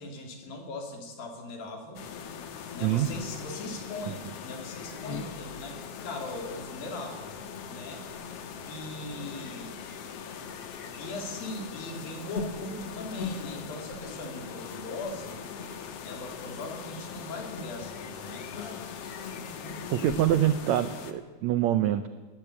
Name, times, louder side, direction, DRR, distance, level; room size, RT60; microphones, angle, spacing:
voice 1, 0.0-2.0 2.7-7.4 7.7-8.0 8.7-9.8 11.0-15.4 16.0-18.9, left 1 dB, 70° left, 4 dB, 4.9 m, -40 dB
sound 1, 1.9-21.1, left 6 dB, 55° left, 1.9 m, -40 dB
voice 2, 2.8-3.1 19.9-22.1, right 12 dB, 90° right, 12 dB, 1.5 m, -25 dB
22.5 x 17.0 x 8.6 m, 1.4 s
omnidirectional pair, 4.3 m